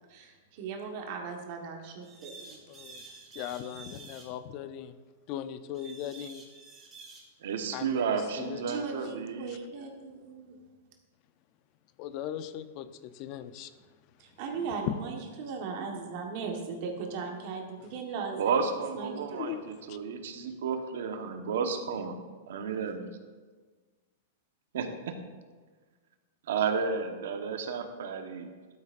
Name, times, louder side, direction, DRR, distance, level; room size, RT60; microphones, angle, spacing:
voice 1, 0.1-2.6 8.7-10.6 14.2-18.6 18.9-19.5 20.4-20.5, right 5 dB, 45° right, 2 dB, 1.3 m, -38 dB
sound 1, 2.0-4.3 5.7-7.2, right 4 dB, 15° right, 2.0 m, -49 dB
voice 2, 2.7-3.0 3.3-5.0 5.3-6.4 7.7-8.8 12.0-13.7 14.9-15.0 19.4-19.6 19.9-20.0, left 11 dB, 40° left, 13 dB, 0.5 m, -38 dB
voice 3, 7.4-9.5 18.4-22.2 22.5-23.1 24.7-25.1 26.5-28.5, right 6 dB, 75° right, 6 dB, 1.1 m, -32 dB
12.5 x 8.1 x 2.5 m, 1.4 s
supercardioid pair, 155°, 0 cm